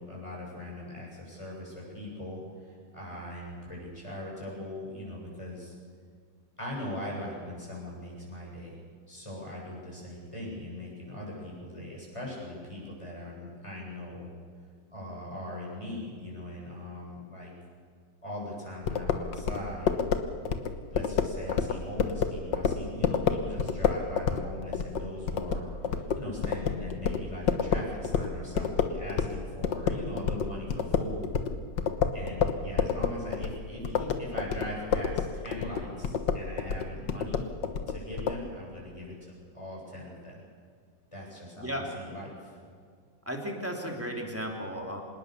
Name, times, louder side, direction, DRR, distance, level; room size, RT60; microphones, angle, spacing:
voice 1, 0.0-5.7 6.6-8.8 9.1-14.3 14.9-17.5 18.2-20.0 20.9-31.3 32.1-37.4 37.9-39.1 39.5-40.4 41.1-42.5, left 1 dB, 15° left, -3 dB, 8.1 m, -40 dB
sound 1, 18.9-29.4 29.6-38.4, left 6 dB, 70° left, 1.9 m, -29 dB
voice 2, 41.6-41.9 43.2-45.0, equal, 5° right, 0 dB, 3.4 m, -34 dB
26.0 x 19.5 x 6.9 m, 2.1 s
omnidirectional pair, 2.0 m